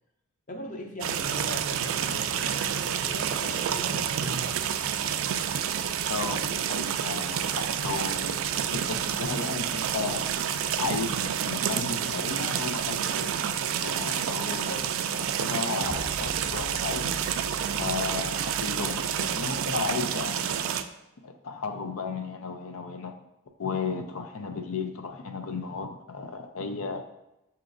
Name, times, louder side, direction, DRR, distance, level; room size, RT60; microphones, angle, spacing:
voice 1, 0.5-4.9 14.7-14.9, equal, 40° left, 2 dB, 0.7 m, -39 dB
sound 1, 1.0-20.8, right 8 dB, 70° right, 0.3 m, -29 dB
voice 2, 6.1-10.3 10.8-13.3 13.8-14.9 15.2-17.2 17.8-20.7 21.2-23.1 23.6-27.0, left 4 dB, 80° left, 6 dB, 0.5 m, -34 dB
sound 2, 15.8-20.4, right 1 dB, ahead, 0.5 m, -44 dB
5.9 x 2.9 x 2.5 m, 0.92 s
head